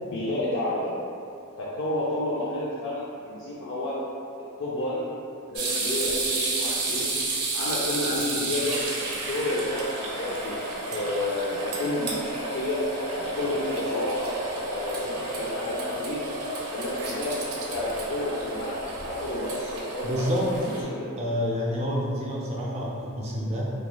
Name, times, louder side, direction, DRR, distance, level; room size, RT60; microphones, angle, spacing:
voice 1, 0.0-0.9 1.6-4.0 4.6-5.1 5.5-7.1 7.5-10.6 10.9-12.8 13.1-14.3 14.6-16.2 16.7-17.4 17.7-20.2 20.5-21.1, left 1 dB, 55° left, -7 dB, 0.4 m, -30 dB
sound 1, 5.6-20.8, right 2 dB, 90° right, 0.6 m, -31 dB
voice 2, 20.0-20.5 21.2-23.7, equal, 30° right, -4 dB, 0.4 m, -28 dB
3.0 x 2.3 x 2.2 m, 2.4 s
head